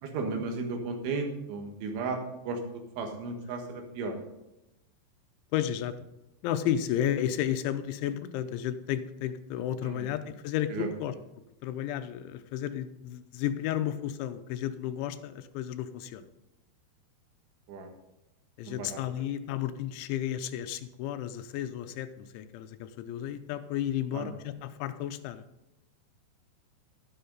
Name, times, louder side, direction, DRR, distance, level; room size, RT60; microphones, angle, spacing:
voice 1, 0.0-2.2 2.5-4.3 9.8-10.1 10.7-10.9 17.7-17.9 18.7-19.3 24.1-24.3, right 3 dB, 85° right, 4 dB, 4.0 m, -35 dB
voice 2, 5.5-5.9 6.4-11.1 11.6-16.2 18.6-25.4, left 11 dB, 85° left, 10 dB, 3.1 m, -32 dB
11.5 x 11.0 x 4.0 m, 0.94 s
omnidirectional pair, 5.3 m